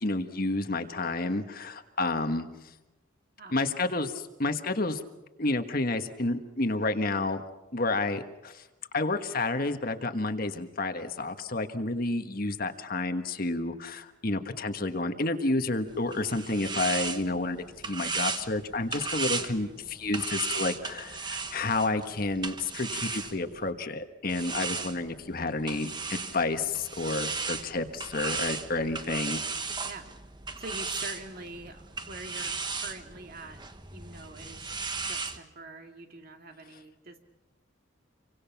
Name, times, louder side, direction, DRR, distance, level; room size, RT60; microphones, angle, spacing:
voice 1, 0.0-2.4 3.5-5.0 5.4-7.4 7.7-8.6 8.9-29.4, left 2 dB, 50° left, 7 dB, 1.5 m, -30 dB
voice 2, 3.4-3.9 19.4-19.7 29.8-30.1 30.6-33.6 33.9-37.2, right 2 dB, 50° right, 4 dB, 2.4 m, -45 dB
sound 1, 15.9-23.7 24.3-35.4, right 4 dB, 25° right, 1.3 m, -36 dB
28.0 x 24.5 x 5.9 m, 1.0 s
head